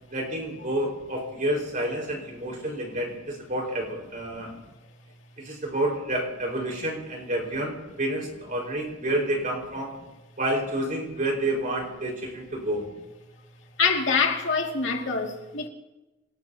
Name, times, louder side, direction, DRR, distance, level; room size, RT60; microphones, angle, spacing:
voice 1, 0.1-4.5 5.4-9.9 10.4-12.8, right 1 dB, 45° right, 4.9 m, -29 dB
voice 2, 13.8-15.7, left 5 dB, 70° left, 2.4 m, -25 dB
26.5 x 19.0 x 2.9 m
head